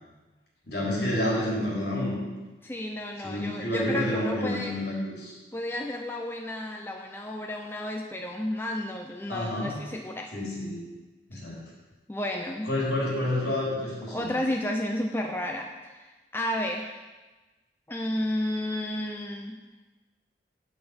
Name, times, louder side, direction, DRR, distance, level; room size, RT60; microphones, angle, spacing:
voice 1, 0.6-2.2 3.2-5.3 9.3-9.8 10.3-10.8 11.3-11.6 12.6-14.3, left 1 dB, 65° left, -5 dB, 3.7 m, -29 dB
voice 2, 2.6-4.7 5.5-10.3 12.1-12.7 14.1-17.0 17.9-19.6, left 1 dB, 10° left, 1 dB, 0.6 m, -32 dB
9.0 x 8.1 x 5.2 m, 1.2 s
head